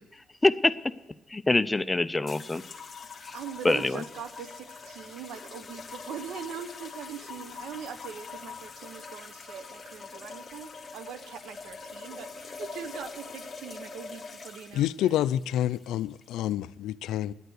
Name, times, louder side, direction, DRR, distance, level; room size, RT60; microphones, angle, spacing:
voice 1, 0.4-0.7 1.3-2.6 3.2-3.3 3.6-4.0, left 2 dB, 15° left, 0.5 m, -24 dB
sound 1, 2.3-16.5, left 4 dB, 35° left, 1.5 m, -44 dB
voice 2, 3.3-15.2, right 8 dB, 80° right, 1.0 m, -42 dB
voice 3, 14.7-17.3, left 12 dB, 85° left, 0.4 m, -28 dB
10.0 x 9.3 x 8.1 m
cardioid pair, 90°, 0 cm